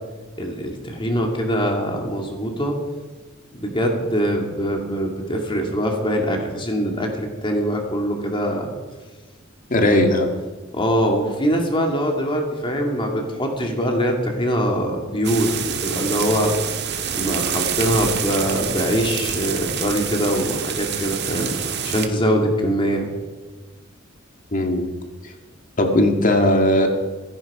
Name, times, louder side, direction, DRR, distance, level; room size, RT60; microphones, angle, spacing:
voice 1, 0.4-2.8 3.6-8.7 9.8-9.9 10.7-15.6 15.8-16.5 17.1-21.5 21.8-23.1, equal, 25° left, 2 dB, 2.3 m, -23 dB
voice 2, 9.7-10.3 24.5-24.9 25.2-25.3 25.8-26.9, left 1 dB, 40° left, 3 dB, 1.9 m, -18 dB
sound 1, 15.2-22.1, right 7 dB, 55° right, 1.6 m, -27 dB
25.5 x 11.0 x 4.9 m, 1.3 s
head